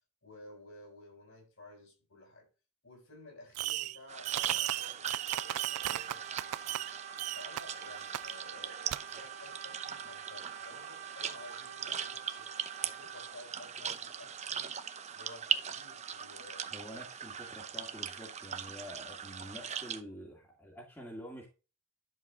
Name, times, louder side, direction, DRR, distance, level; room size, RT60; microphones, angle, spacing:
voice 1, 0.2-2.5 2.8-6.9 7.3-12.5 12.8-14.7 15.1-16.7, left 2 dB, 65° left, 6.5 m, -54 dB
Fireworks, 3.5-4.0 4.2-6.9 7.2-7.6 8.1-8.2 8.9-9.0, right 14 dB, 85° right, 0.4 m, -35 dB
sound 1, 4.1-20.0, right 8 dB, 30° right, 0.8 m, -40 dB
Brass instrument, 5.3-13.4, right 8 dB, 50° right, 1.2 m, -48 dB
voice 2, 16.7-21.5, equal, 10° left, 2.1 m, -47 dB
11.0 x 7.2 x 3.7 m
head